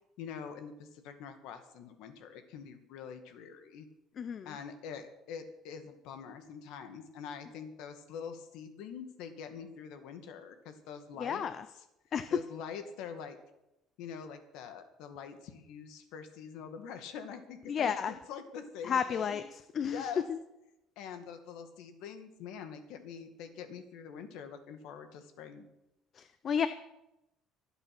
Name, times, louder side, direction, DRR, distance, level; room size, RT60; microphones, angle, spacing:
voice 1, 0.2-3.9 4.5-11.5 11.7-11.9 12.3-13.4 14.0-19.4 19.8-20.3 21.0-25.7, left 7 dB, 75° left, 8 dB, 2.1 m, -45 dB
voice 2, 4.2-4.5 11.2-11.6 12.1-12.4 17.7-18.1 18.8-19.4 19.7-20.4 26.2-26.7, left 7 dB, 40° left, 12 dB, 0.6 m, -31 dB
24.5 x 8.2 x 6.1 m, 0.90 s
cardioid pair, 140°, 0 cm